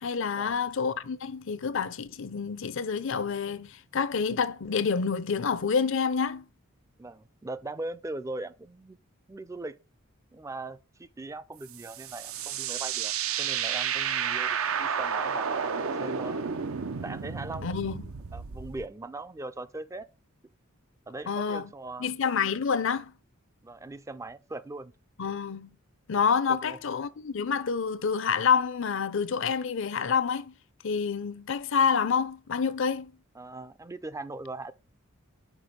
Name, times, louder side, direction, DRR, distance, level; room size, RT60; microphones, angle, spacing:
voice 1, 0.0-6.4 17.6-18.1 21.3-21.7 22.0-23.1 25.2-25.7 26.1-30.5 30.8-33.1, left 6 dB, 60° left, 0.6 m, -28 dB
voice 2, 7.0-9.0 9.3-9.8 10.3-13.1 13.4-16.4 17.0-20.1 21.1-22.1 23.6-24.9 26.5-26.8 33.3-34.7, right 2 dB, 15° right, 0.4 m, -40 dB
sound 1, 11.7-18.9, right 7 dB, 75° right, 0.6 m, -31 dB
6.1 x 4.6 x 5.0 m
head